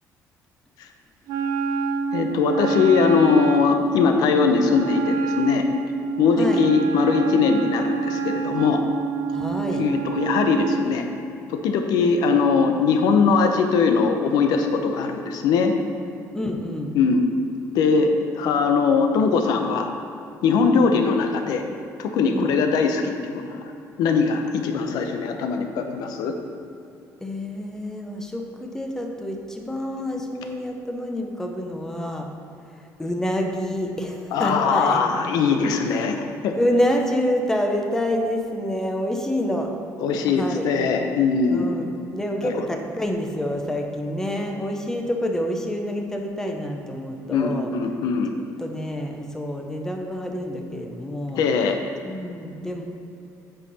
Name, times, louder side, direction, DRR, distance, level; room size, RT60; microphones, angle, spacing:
Wind instrument woodwind instrument, 1.3-10.9, right 5 dB, 80° right, 0.6 m, -27 dB
voice 1, 2.1-5.6 6.2-8.8 9.8-11.0 11.5-15.7 16.9-17.2 17.7-19.9 20.4-21.6 22.0-23.7 24.0-26.3 34.3-36.6 40.0-41.7 42.4-42.7 47.3-48.3 51.3-51.8, left 5 dB, 75° left, 5 dB, 0.7 m, -21 dB
voice 2, 9.3-9.9 16.3-16.9 20.7-20.9 22.3-22.5 27.2-32.3 33.0-35.0 36.5-39.7 40.3-40.7 41.5-47.7 48.6-51.4 52.0-52.8, left 1 dB, 5° left, 3 dB, 0.7 m, -27 dB
8.0 x 5.6 x 4.1 m, 2.6 s
cardioid pair, 140°, 7 cm